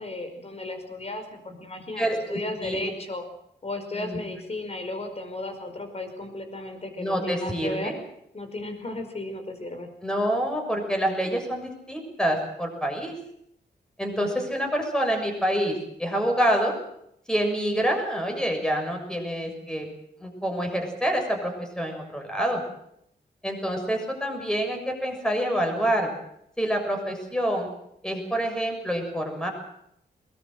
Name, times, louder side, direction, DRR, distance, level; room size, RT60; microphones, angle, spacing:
voice 1, 0.0-3.2 3.6-8.0 8.3-9.9, left 2 dB, 35° left, 7 dB, 5.1 m, -35 dB
voice 2, 2.0-2.9 3.9-4.2 7.0-8.0 10.0-13.1 14.0-16.7 17.3-19.9 20.2-22.6 23.4-26.1 26.6-27.7 28.0-29.5, equal, 5° left, 3 dB, 6.8 m, -27 dB
21.5 x 20.0 x 7.9 m, 0.75 s
cardioid pair, 95°, 18 cm